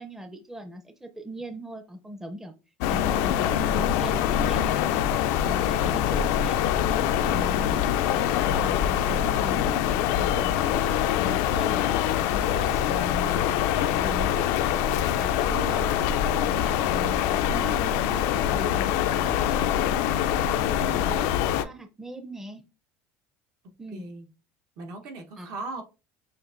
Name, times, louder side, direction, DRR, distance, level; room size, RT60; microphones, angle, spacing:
voice 1, 0.0-2.5 2.9-5.1 5.4-6.6 7.2-7.9 8.1-10.7 11.2-13.6 13.9-14.5 15.2-15.9 16.5-19.4 20.4-22.6 23.8-24.1 25.4-25.5, right 1 dB, 5° right, 7 dB, 0.5 m, -39 dB
sound 1, 2.8-21.6, left 10 dB, 70° left, 0.4 m, -24 dB
voice 2, 7.5-7.9 20.7-21.3 23.9-24.3 24.8-25.8, right 2 dB, 60° right, 4 dB, 1.0 m, -39 dB
6.5 x 2.6 x 2.5 m, 0.30 s
supercardioid pair, 110°, 7 cm